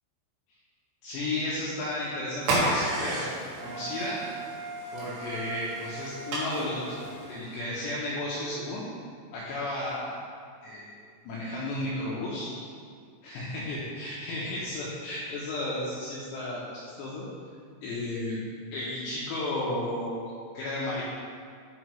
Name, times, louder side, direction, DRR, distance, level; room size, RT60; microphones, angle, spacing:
voice 1, 1.0-3.3 3.6-4.2 4.9-7.0 7.3-8.8 9.3-10.2 10.6-10.9 11.3-12.5 13.2-17.2 17.8-18.4 18.7-21.0, left 1 dB, 80° left, -6 dB, 2.6 m, -33 dB
sound 1, 2.4-7.6, right 2 dB, 65° right, 3.1 m, -33 dB
Wind instrument woodwind instrument, 3.6-7.4, right 4 dB, 85° right, 2.7 m, -41 dB
9.3 x 5.1 x 3.0 m, 2.2 s
omnidirectional pair, 5.8 m